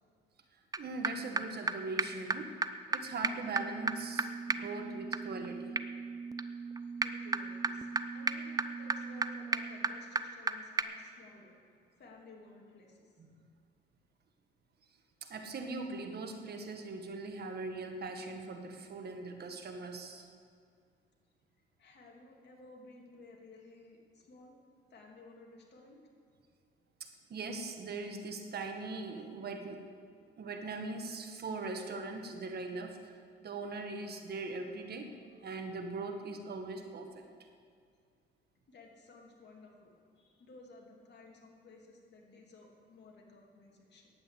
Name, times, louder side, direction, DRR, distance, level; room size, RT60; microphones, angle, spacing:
voice 1, 0.5-2.5 2.9-5.8 13.2-13.5 15.2-20.2 27.0-29.8 30.4-35.1 35.4-37.2, right 3 dB, 55° right, 5 dB, 1.5 m, -41 dB
sound 1, 0.7-0.8 1.0-1.1 1.4-1.5 1.7-1.8 2.0-2.1 2.3-2.4 2.6-2.7 2.9-3.0 3.2-10.5 10.8-10.9, right 3 dB, 20° right, 0.5 m, -35 dB
voice 2, 7.0-11.5 12.0-13.1 21.8-24.6 24.9-26.0 38.7-44.1, left 3 dB, 60° left, -1 dB, 2.7 m, -56 dB
10.0 x 8.7 x 8.2 m, 2.2 s
cardioid pair, 90°, 20 cm